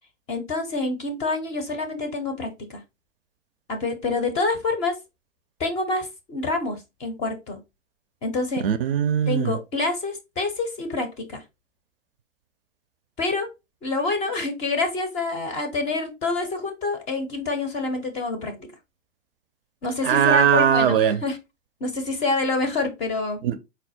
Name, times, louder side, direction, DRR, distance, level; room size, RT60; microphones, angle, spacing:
voice 1, 0.3-2.8 3.7-4.9 5.6-7.6 8.2-8.6 9.3-11.4 13.2-13.5 13.8-18.7 19.8-21.4 21.8-23.4, left 3 dB, 20° left, 0.5 m, -27 dB
voice 2, 8.6-9.5 20.0-21.2 23.4-23.6, right 9 dB, 50° right, 0.5 m, -20 dB
4.1 x 2.1 x 3.9 m
figure-of-eight pair, 115°, 38 cm